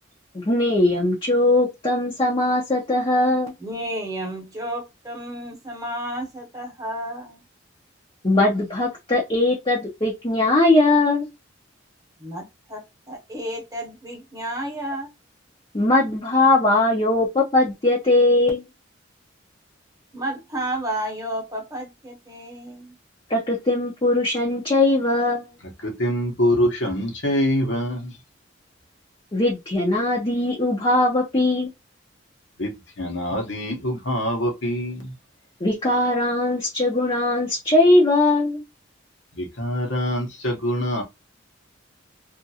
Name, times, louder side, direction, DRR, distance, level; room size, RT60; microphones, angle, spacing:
voice 1, 0.3-3.5 8.2-11.3 15.7-18.6 23.3-25.5 29.3-31.7 35.6-38.6, left 2 dB, 25° left, 0.6 m, -20 dB
voice 2, 3.6-7.4 12.2-15.1 20.1-22.9, right 1 dB, 20° right, 1.0 m, -32 dB
voice 3, 25.6-28.2 32.6-35.2 39.3-41.0, equal, 70° left, 1.0 m, -25 dB
2.8 x 2.5 x 2.7 m
head